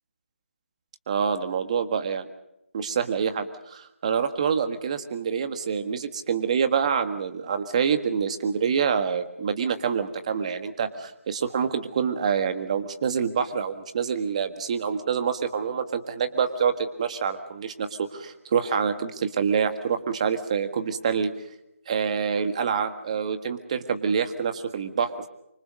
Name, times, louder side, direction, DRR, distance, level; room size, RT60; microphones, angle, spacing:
voice 1, 1.1-2.3 2.7-21.3 21.9-25.3, right 6 dB, 30° right, 9 dB, 1.7 m, -26 dB
26.0 x 25.0 x 5.4 m, 0.83 s
figure-of-eight pair, 165°, 7 cm